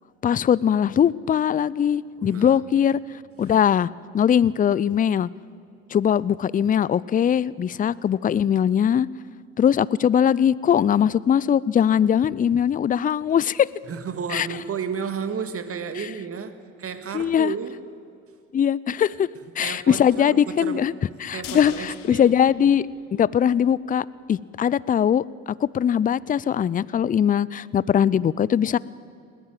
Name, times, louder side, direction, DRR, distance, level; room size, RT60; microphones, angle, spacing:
voice 1, 0.2-3.0 3.4-5.3 5.9-9.1 9.6-13.7 14.3-14.5 17.1-17.5 18.5-19.3 19.6-20.9 21.2-28.8, left 9 dB, 20° left, 21 dB, 0.5 m, -21 dB
voice 2, 2.2-2.8 3.4-3.6 13.8-17.8 19.6-20.9 21.3-22.3, right 6 dB, 35° right, 9 dB, 1.9 m, -32 dB
sound 1, 21.4-23.6 23.9-24.0 24.3-24.4, left 12 dB, 60° left, 1.4 m, -43 dB
21.0 x 18.5 x 7.6 m, 2.6 s
hypercardioid pair, 60°, 38 cm